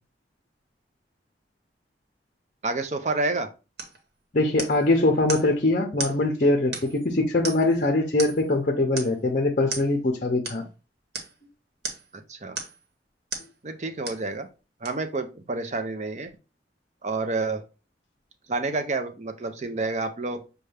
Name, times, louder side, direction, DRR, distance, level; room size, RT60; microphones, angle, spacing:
voice 1, 2.6-3.5 12.1-12.6 13.6-14.5 14.8-16.3 17.0-17.6 18.5-20.5, right 3 dB, 40° right, 0.6 m, -29 dB
sound 1, 3.8-4.0 4.6-4.9 5.3-5.5 6.0-6.2 6.7-7.1 7.4-7.8 8.2-8.5 9.0-9.2 9.7-9.9 10.4-10.6 11.1-11.3 11.8-12.1 12.5-12.8 13.3-13.5 14.0-14.3 14.8-14.9, right 3 dB, 65° right, 1.2 m, -34 dB
voice 2, 4.3-10.6, left 2 dB, 45° left, 0.6 m, -22 dB
6.5 x 2.3 x 3.3 m
head